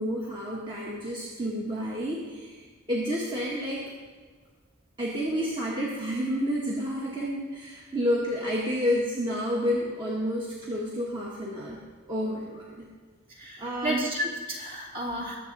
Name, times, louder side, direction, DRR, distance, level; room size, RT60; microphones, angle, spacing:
voice 1, 0.0-2.6 2.9-3.9 5.0-11.8 12.1-12.9 13.6-14.0, equal, 25° right, -5 dB, 1.5 m, -30 dB
voice 2, 13.4-15.4, equal, 40° right, -3 dB, 2.9 m, -32 dB
20.5 x 7.6 x 4.1 m, 1.5 s
head